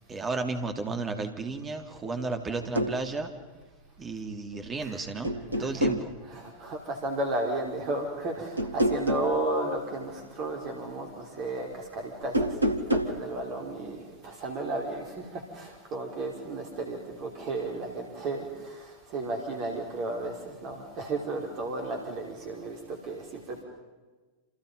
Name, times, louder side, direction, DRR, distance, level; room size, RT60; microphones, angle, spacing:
voice 1, 0.1-3.3 4.0-6.1, right 3 dB, 20° right, 5 dB, 3.2 m, -33 dB
sound 1, 2.5-3.0 4.5-4.9 5.2-6.1 8.6-9.3 12.2-13.2, equal, 80° right, 1.8 m, -27 dB
voice 2, 5.5-5.8 6.2-23.6, right 2 dB, 40° right, 2 dB, 4.7 m, -34 dB
29.5 x 28.0 x 5.5 m, 1.3 s
figure-of-eight pair, 90°, 0 cm